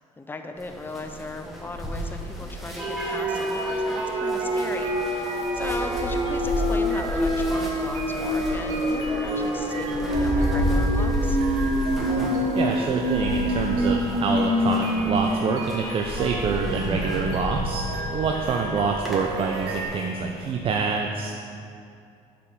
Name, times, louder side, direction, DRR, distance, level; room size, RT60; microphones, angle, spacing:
voice 1, 0.0-11.4, left 2 dB, 15° left, 6 dB, 0.6 m, -37 dB
sound 1, 0.6-20.5, equal, ahead, 1.4 m, -32 dB
sound 2, 2.8-15.3 15.6-15.7 16.1-18.8, equal, 20° right, 1.4 m, -27 dB
sound 3, 2.8-19.8, right 2 dB, 90° right, 1.2 m, -35 dB
voice 2, 12.5-21.4, right 5 dB, 45° right, 2 dB, 0.5 m, -26 dB
6.8 x 5.2 x 5.9 m, 2.4 s
cardioid pair, 110°, 13 cm